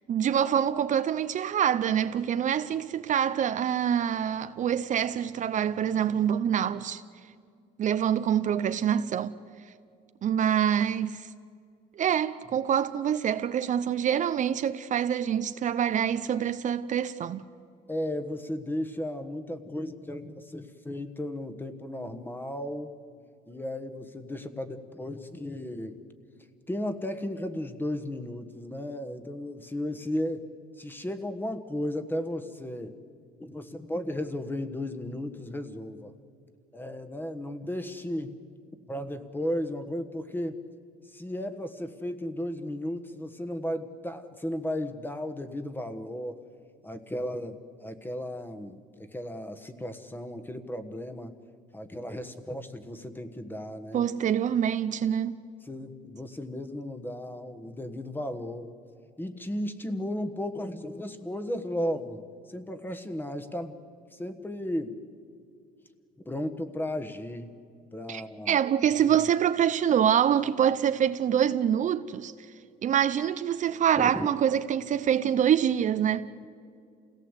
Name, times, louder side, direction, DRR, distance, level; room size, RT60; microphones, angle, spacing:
voice 1, 0.1-7.0 7.8-9.4 10.2-11.3 12.0-17.4 53.9-55.4 68.1-72.3 72.8-76.3, right 9 dB, 50° right, 0.6 m, -25 dB
voice 2, 17.9-23.0 23.5-26.0 26.7-30.4 30.8-32.9 33.4-36.1 36.7-38.4 38.9-40.6 41.1-46.4 46.8-51.3 51.7-54.1 55.6-58.7 59.2-62.2 62.5-63.8 64.1-65.0 66.2-67.5 67.9-68.6 74.0-74.3, left 1 dB, 10° left, 1.4 m, -35 dB
27.5 x 17.5 x 8.2 m
cardioid pair, 110°, 17 cm